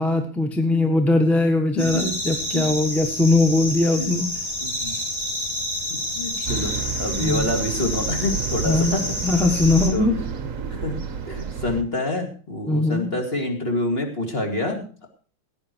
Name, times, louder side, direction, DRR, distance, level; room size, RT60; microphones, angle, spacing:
voice 1, 0.0-4.3 4.8-5.1 6.4-6.6 7.2-7.5 8.6-10.2 12.7-13.1, left 2 dB, ahead, 5 dB, 1.1 m, -21 dB
sound 1, 1.8-9.9, equal, 65° left, 7.7 m, -29 dB
voice 2, 4.6-4.9 6.1-6.7 7.0-9.0 9.9-10.1 10.7-15.1, left 2 dB, 30° left, 3 dB, 2.6 m, -27 dB
sound 2, 6.4-11.8, right 6 dB, 45° right, 1.3 m, -30 dB
16.5 x 9.8 x 4.6 m, 0.39 s
omnidirectional pair, 2.3 m